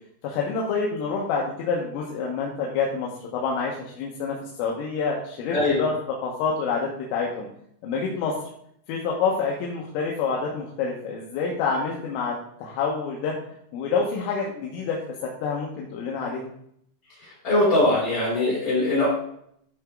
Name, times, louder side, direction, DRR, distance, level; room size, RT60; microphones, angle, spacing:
voice 1, 0.2-5.9 6.2-7.5 7.8-8.3 8.9-12.3 12.6-13.4 13.7-16.5, left 5 dB, 80° left, -2 dB, 3.6 m, -27 dB
voice 2, 5.5-5.9 17.2-19.1, left 2 dB, 25° left, -11 dB, 3.4 m, -22 dB
13.5 x 5.0 x 3.6 m, 0.69 s
omnidirectional pair, 6.0 m